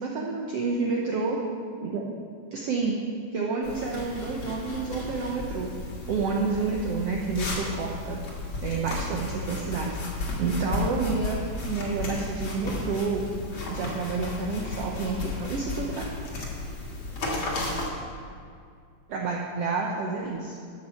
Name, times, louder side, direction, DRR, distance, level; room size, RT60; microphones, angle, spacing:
voice 1, 0.0-1.4 1.8-2.1 2.5-2.9 3.3-5.7 6.1-8.2 8.6-10.0 10.4-11.4 11.7-13.3 13.7-16.1 19.1-20.6, right 4 dB, 75° right, -1 dB, 1.4 m, -29 dB
sound 1, 3.6-17.9, left 2 dB, 45° left, 2.2 m, -34 dB
12.5 x 5.9 x 7.1 m, 2.3 s
omnidirectional pair, 3.8 m